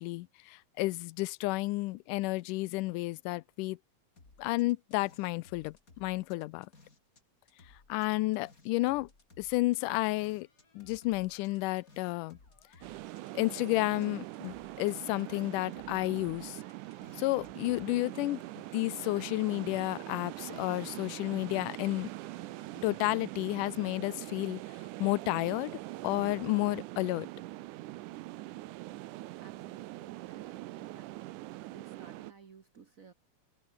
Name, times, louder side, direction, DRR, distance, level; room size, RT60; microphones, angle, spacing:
voice 1, 0.0-3.8 4.4-6.7 7.9-9.1 9.4-10.5 10.8-12.4 13.4-16.6 17.2-18.4 18.7-22.1 22.8-24.6 25.0-25.7 26.0-27.3, left 20 dB, 90° left, 2.2 m, -31 dB
sound 1, 4.2-7.2 7.5-14.1 14.3-17.9, left 3 dB, 25° left, 4.0 m, -60 dB
sound 2, 10.2-25.3, left 4 dB, 50° left, 5.6 m, -66 dB
sound 3, 12.8-32.3, right 18 dB, 85° right, 2.2 m, -43 dB
voice 2, 29.4-31.1 31.7-33.1, right 5 dB, 65° right, 0.8 m, -56 dB
omnidirectional pair, 3.6 m